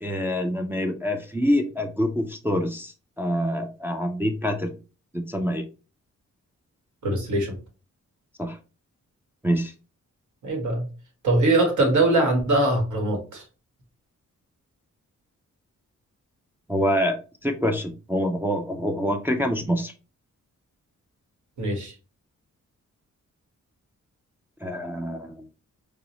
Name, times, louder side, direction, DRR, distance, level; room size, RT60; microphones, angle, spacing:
voice 1, 0.0-4.8 5.1-5.7 8.4-8.6 9.4-9.7 16.7-19.9 24.6-25.5, equal, 10° right, 3 dB, 0.3 m, -26 dB
voice 2, 7.0-7.6 10.4-10.9 11.2-13.4 21.6-21.9, right 2 dB, 70° right, 2 dB, 1.3 m, -22 dB
4.8 x 2.0 x 2.9 m, 0.33 s
wide cardioid pair, 140°, 31 cm